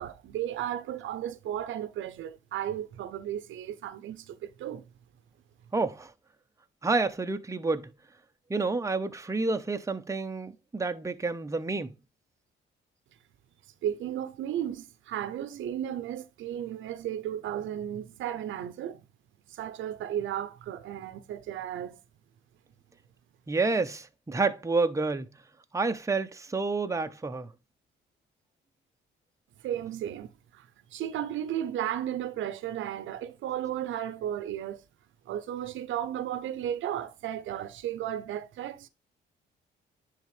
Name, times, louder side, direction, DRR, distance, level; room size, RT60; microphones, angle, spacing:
voice 1, 0.0-4.8 13.8-19.0 19.5-22.0 29.6-34.8 35.3-38.9, right 11 dB, 80° right, 0.7 m, -34 dB
voice 2, 5.7-6.1 6.8-7.9 8.5-11.9 23.5-25.3 25.7-27.5, right 3 dB, 15° right, 0.8 m, -29 dB
10.0 x 3.7 x 3.2 m
cardioid pair, 90°, 20 cm